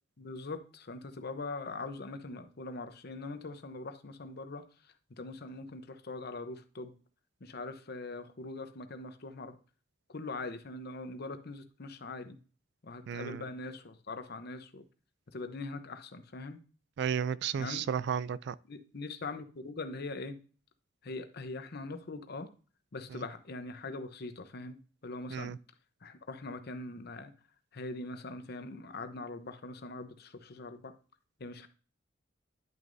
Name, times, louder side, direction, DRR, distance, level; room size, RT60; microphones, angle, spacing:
voice 1, 0.2-4.7 5.2-6.9 7.4-9.6 10.1-12.4 12.8-14.8 15.3-16.6 17.6-17.8 18.7-20.4 21.0-22.5 22.9-24.8 25.0-25.5 26.0-27.3 27.7-30.9 31.4-31.7, left 3 dB, 60° left, 0.8 m, -42 dB
voice 2, 13.1-13.4 17.0-18.6 25.3-25.6, right 8 dB, 65° right, 0.3 m, -33 dB
10.5 x 6.2 x 2.6 m
head